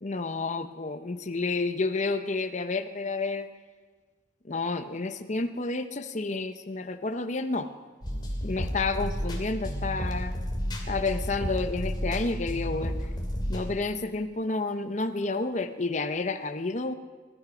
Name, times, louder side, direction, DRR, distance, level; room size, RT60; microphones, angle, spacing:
voice 1, 0.0-3.5 4.4-7.7 8.4-10.3 10.9-12.9 13.5-16.9, left 3 dB, 40° left, 9 dB, 0.8 m, -30 dB
sound 1, 8.0-13.7, equal, 25° left, 2.5 m, -32 dB
21.0 x 13.0 x 5.1 m, 1.5 s
head